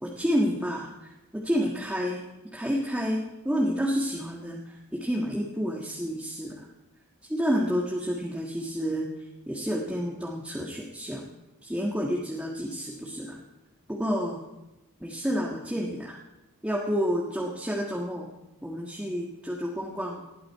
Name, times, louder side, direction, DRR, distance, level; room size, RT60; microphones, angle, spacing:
voice 1, 0.0-2.2 2.5-6.7 7.3-11.3 11.6-13.4 13.9-14.4 15.0-16.2 16.6-18.3 18.6-20.3, equal, 5° right, -3 dB, 1.5 m, -30 dB
19.5 x 12.5 x 4.6 m, 0.98 s
head